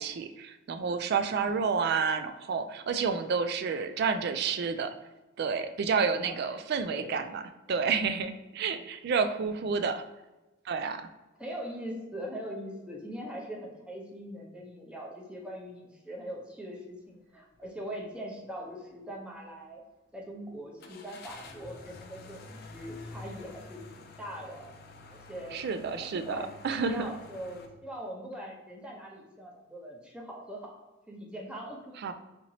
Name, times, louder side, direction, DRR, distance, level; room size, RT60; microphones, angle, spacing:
voice 1, 0.0-4.9 5.4-7.4 7.7-10.0 10.7-11.0 25.5-26.4 26.6-27.1 32.0-32.1, right 5 dB, 55° right, 9 dB, 0.3 m, -30 dB
voice 2, 6.2-7.1 8.7-8.9 11.4-19.8 20.1-24.7 25.1-25.7 26.0-26.5 26.8-32.0, equal, 5° right, -2 dB, 0.7 m, -42 dB
sound 1, 17.5-17.8 18.2-18.3 20.8-27.7, left 3 dB, 50° left, 0.4 m, -49 dB
4.2 x 2.9 x 2.7 m, 1.1 s
head